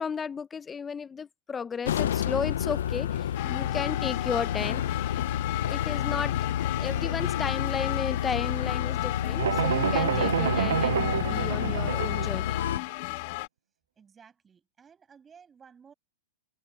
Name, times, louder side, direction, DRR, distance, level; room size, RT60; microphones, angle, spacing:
voice 1, 0.0-4.8 5.7-12.6, left 6 dB, 15° left, 0.6 m, -34 dB
sound 1, 1.8-12.8, left 10 dB, 75° left, 0.5 m, -30 dB
sound 2, 3.3-13.5, left 22 dB, 50° left, 1.4 m, -35 dB
sound 3, 9.4-12.3, right 9 dB, 85° right, 0.6 m, -28 dB
voice 2, 14.0-15.9, right 6 dB, 15° right, 7.1 m, -55 dB
hypercardioid pair, 140°, 0 cm